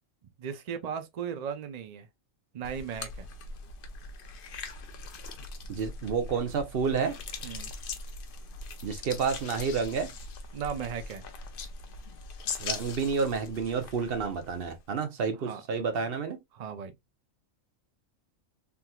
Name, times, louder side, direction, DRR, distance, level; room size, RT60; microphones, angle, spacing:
voice 1, 0.4-2.1 2.5-3.3 7.4-7.7 10.5-11.2 15.3-15.6 16.5-17.0, right 7 dB, 75° right, 0.3 m, -36 dB
sound 1, 2.6-14.8, left 4 dB, 55° left, 0.6 m, -41 dB
voice 2, 5.7-7.2 8.8-10.1 12.6-16.4, right 5 dB, 55° right, 0.8 m, -30 dB
3.5 x 2.8 x 2.2 m
omnidirectional pair, 1.4 m